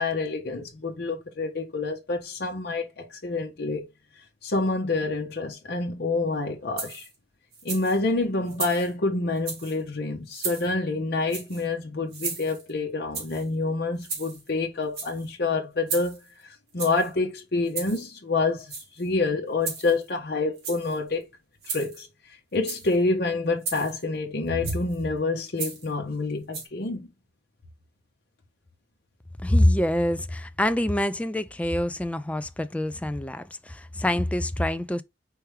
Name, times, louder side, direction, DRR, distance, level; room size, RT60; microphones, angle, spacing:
voice 1, 0.0-3.8 4.4-7.0 7.6-21.2 21.7-22.1 22.5-27.1, left 3 dB, 60° left, 1.0 m, -27 dB
sound 1, 6.8-7.1 7.5-8.0 8.5-8.9 9.4-9.8 10.3-10.7 11.3-11.7 12.1-12.7 13.1-13.5 14.0-14.5 14.8-15.3 15.9-16.3 16.8-17.1 17.7-18.1 18.6-19.1 19.6-20.1 20.5-21.0 21.6-22.0 22.5-22.9 23.6-24.0 24.6-25.0 25.6-25.9 26.5-26.7, right 5 dB, 60° right, 2.2 m, -35 dB
voice 2, 29.4-35.0, left 1 dB, 10° left, 0.3 m, -25 dB
4.6 x 3.4 x 3.2 m
head